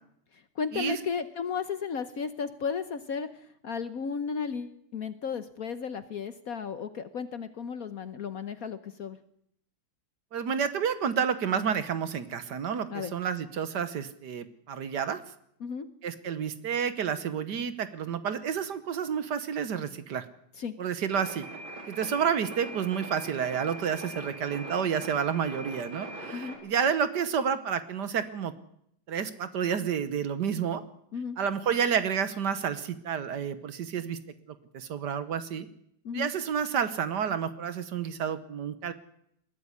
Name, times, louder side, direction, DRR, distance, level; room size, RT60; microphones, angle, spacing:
voice 1, 0.6-3.3 3.6-9.2 12.9-13.1 15.6-15.9 20.6-20.7 26.3-26.6 31.1-31.4 36.0-36.3, left 6 dB, 55° left, 12 dB, 1.1 m, -34 dB
voice 2, 10.3-15.2 16.0-20.2 20.8-21.4 21.9-28.5 29.1-30.8 31.4-34.2 34.7-35.7 36.1-38.9, right 7 dB, 60° right, 12 dB, 1.5 m, -30 dB
sound 1, 21.1-26.6, right 1 dB, 75° right, 4.5 m, -41 dB
21.0 x 12.5 x 9.8 m, 0.73 s
omnidirectional pair, 2.2 m